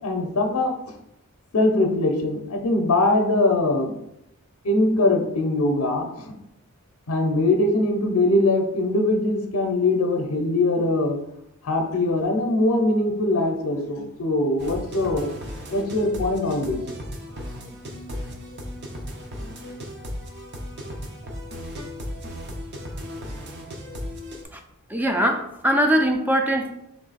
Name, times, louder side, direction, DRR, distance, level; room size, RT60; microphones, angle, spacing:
voice 1, 0.0-0.7 1.5-3.9 4.6-6.3 7.1-11.2 11.6-15.3 15.7-16.8, left 2 dB, 70° left, 4 dB, 0.6 m, -22 dB
sound 1, 14.6-24.4, equal, 50° right, 0.7 m, -36 dB
voice 2, 24.9-26.7, equal, 10° right, 4 dB, 0.4 m, -21 dB
3.6 x 3.1 x 4.0 m, 0.80 s
head